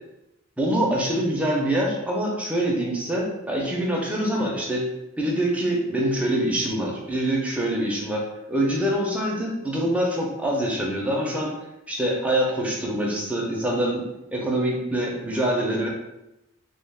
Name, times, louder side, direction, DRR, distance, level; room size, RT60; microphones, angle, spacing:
voice 1, 0.6-4.8 5.2-11.5 11.9-15.9, right 1 dB, 5° right, -3 dB, 0.5 m, -25 dB
2.3 x 2.3 x 3.4 m, 0.92 s
head